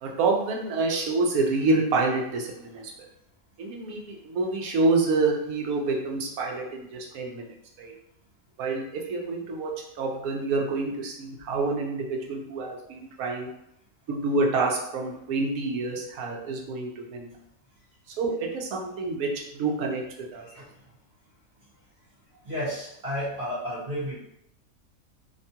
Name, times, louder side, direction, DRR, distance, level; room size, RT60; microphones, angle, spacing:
voice 1, 0.0-2.9 3.6-7.9 8.6-9.7 10.0-13.5 14.1-17.3 18.2-20.4, right 3 dB, 90° right, 0 dB, 1.1 m, -27 dB
voice 2, 22.4-24.2, equal, 50° right, -7 dB, 1.2 m, -32 dB
2.9 x 2.2 x 2.7 m, 0.79 s
omnidirectional pair, 1.4 m